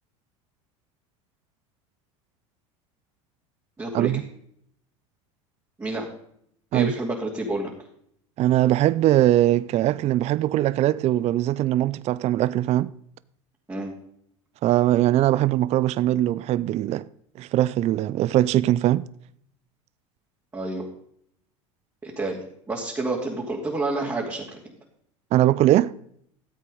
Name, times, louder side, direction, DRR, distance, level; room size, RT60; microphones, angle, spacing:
voice 1, 3.8-4.1 5.8-6.1 6.7-7.7 13.7-13.9 20.5-20.8 22.0-24.6, right 2 dB, 15° right, 2.7 m, -29 dB
voice 2, 8.4-12.9 14.6-17.0 17.4-19.0 25.3-25.9, right 14 dB, 40° right, 0.4 m, -21 dB
13.5 x 8.2 x 5.4 m
hypercardioid pair, 85°, 16 cm